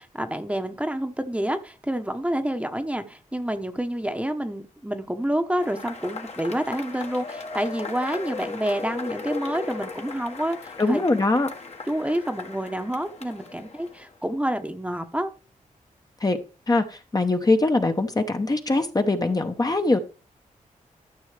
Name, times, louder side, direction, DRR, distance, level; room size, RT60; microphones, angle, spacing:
voice 1, 0.0-11.0 11.9-15.3, right 1 dB, 10° right, 7 dB, 1.0 m, -28 dB
Cheering / Applause / Crowd, 5.6-14.2, left 4 dB, 50° left, 1.5 m, -37 dB
voice 2, 10.8-11.5 16.2-16.4 16.7-20.0, left 2 dB, 25° left, 6 dB, 0.9 m, -22 dB
12.5 x 6.2 x 3.3 m, 0.34 s
cardioid pair, 85°, 14 cm